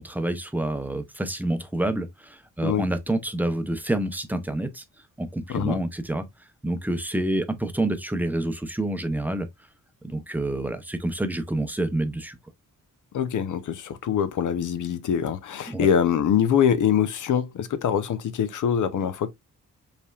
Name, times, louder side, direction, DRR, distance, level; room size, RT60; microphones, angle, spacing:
voice 1, 0.0-4.8 5.2-6.3 6.6-9.5 10.0-12.4 15.7-15.9, right 1 dB, 5° right, 0.6 m, -28 dB
voice 2, 5.5-5.8 13.1-19.3, left 8 dB, 70° left, 0.7 m, -24 dB
5.3 x 3.4 x 2.4 m
wide cardioid pair, 160°, 31 cm